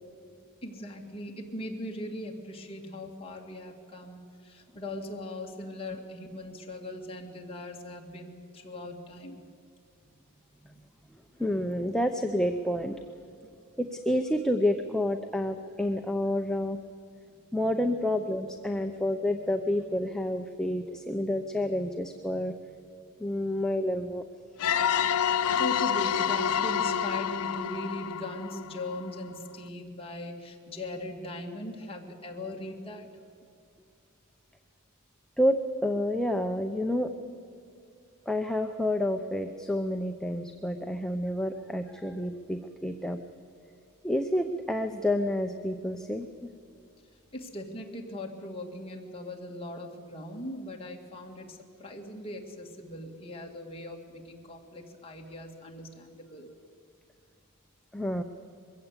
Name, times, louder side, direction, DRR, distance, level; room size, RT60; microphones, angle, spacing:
voice 1, 0.6-9.4 25.3-33.1 47.3-56.5, left 1 dB, 25° left, 0 dB, 2.1 m, -40 dB
voice 2, 11.4-13.0 13.8-16.8 17.5-22.5 23.2-24.2 35.4-37.1 38.3-43.2 44.0-46.5 57.9-58.2, left 1 dB, 5° left, 5 dB, 0.7 m, -29 dB
sound 1, 24.6-29.2, left 8 dB, 80° left, 0.6 m, -28 dB
22.5 x 16.0 x 8.3 m, 2.5 s
head